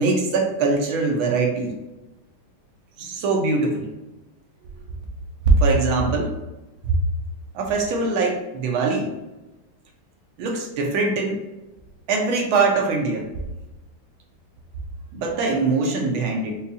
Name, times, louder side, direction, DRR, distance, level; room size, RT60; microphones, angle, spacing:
voice 1, 0.0-1.7 3.0-3.9 5.5-6.4 6.9-7.0 7.5-9.1 10.4-11.4 12.1-13.3 15.1-16.6, right 3 dB, 75° right, 1 dB, 1.4 m, -22 dB
5.3 x 2.3 x 2.7 m, 1.0 s
omnidirectional pair, 2.4 m